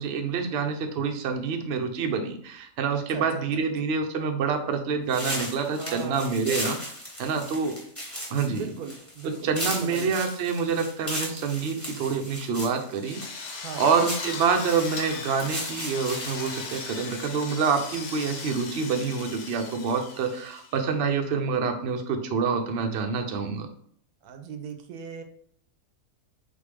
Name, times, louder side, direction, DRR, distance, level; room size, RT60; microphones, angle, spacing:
voice 1, 0.0-6.8 7.2-7.8 8.3-8.7 9.4-23.7, right 5 dB, 60° right, 4 dB, 0.7 m, -27 dB
voice 2, 2.9-3.7 5.7-6.7 8.5-10.2 13.6-13.9 24.2-25.2, right 6 dB, 80° right, 7 dB, 1.1 m, -39 dB
sound 1, 5.1-17.2, equal, 10° left, 1.3 m, -37 dB
Drill, 13.0-20.9, left 4 dB, 75° left, 1.3 m, -38 dB
4.1 x 3.5 x 3.3 m, 0.62 s
omnidirectional pair, 1.7 m